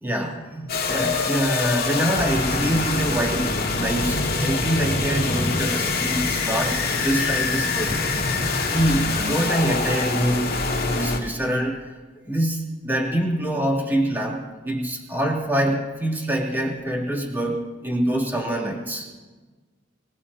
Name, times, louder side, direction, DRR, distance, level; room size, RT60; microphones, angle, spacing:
voice 1, 0.0-8.2 8.7-10.5 10.9-11.8 12.3-19.1, right 1 dB, 10° right, -2 dB, 2.8 m, -25 dB
sound 1, 0.7-11.2, left 3 dB, 55° left, 2.6 m, -24 dB
26.0 x 19.0 x 2.8 m, 1.3 s
head